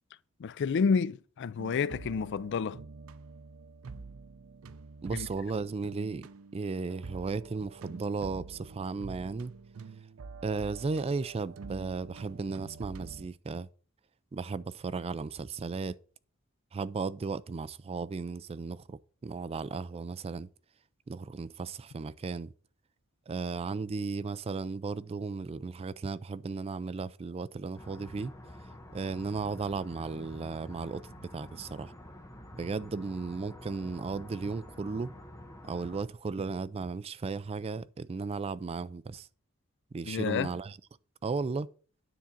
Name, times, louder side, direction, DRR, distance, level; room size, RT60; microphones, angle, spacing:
voice 1, 0.4-2.8 5.1-5.3 40.1-40.5, left 5 dB, 55° left, 0.4 m, -29 dB
sound 1, 1.6-13.3, right 4 dB, 80° right, 0.5 m, -47 dB
voice 2, 5.0-6.2 6.5-9.5 10.4-13.7 14.3-16.0 16.7-20.5 21.1-22.5 23.3-28.3 28.9-31.9 32.5-35.1 35.6-39.3 39.9-40.8 41.2-41.7, right 4 dB, 30° right, 0.3 m, -35 dB
sound 2, 27.7-36.0, left 1 dB, 15° left, 1.2 m, -48 dB
9.7 x 3.8 x 7.3 m
head